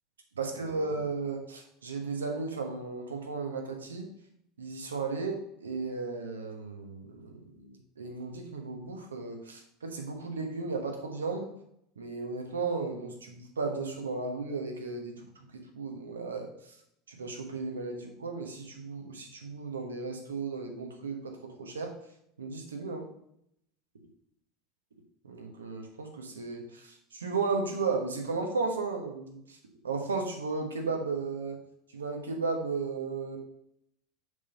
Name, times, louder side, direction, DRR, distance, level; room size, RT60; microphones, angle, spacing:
voice 1, 0.4-4.1 4.6-7.4 8.0-11.5 12.0-16.5 17.1-21.9 22.4-23.1 25.2-29.6 29.8-31.6 31.9-33.4, right 4 dB, 90° right, 3 dB, 1.1 m, -35 dB
6.5 x 3.6 x 5.6 m, 0.73 s
hypercardioid pair, 80°, 0 cm